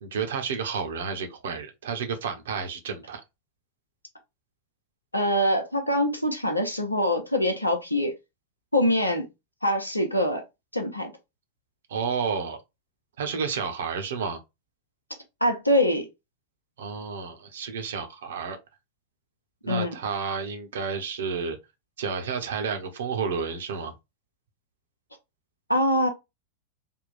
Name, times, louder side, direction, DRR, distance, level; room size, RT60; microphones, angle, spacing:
voice 1, 0.0-3.2 11.9-12.6 13.2-14.4 16.8-18.6 19.6-21.6 22.0-23.9, right 6 dB, 60° right, 0.8 m, -31 dB
voice 2, 5.1-8.1 8.7-9.2 9.6-10.4 10.7-11.1 15.4-16.1 19.7-19.9 25.7-26.1, equal, 85° left, 0.8 m, -24 dB
3.6 x 2.2 x 4.2 m
figure-of-eight pair, 90°, 0 cm